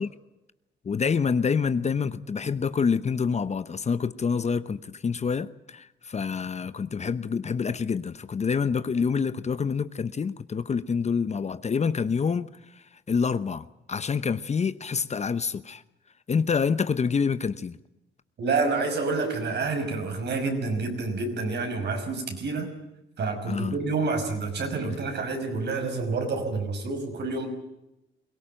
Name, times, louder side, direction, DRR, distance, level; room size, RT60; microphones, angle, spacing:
voice 1, 0.8-15.8 16.3-17.8 23.5-23.8 24.8-25.0, left 5 dB, 35° left, 14 dB, 0.9 m, -27 dB
voice 2, 18.4-22.7 23.2-27.5, right 3 dB, 60° right, 6 dB, 5.7 m, -28 dB
23.0 x 17.0 x 9.0 m, 0.93 s
cardioid pair, 90°, 20 cm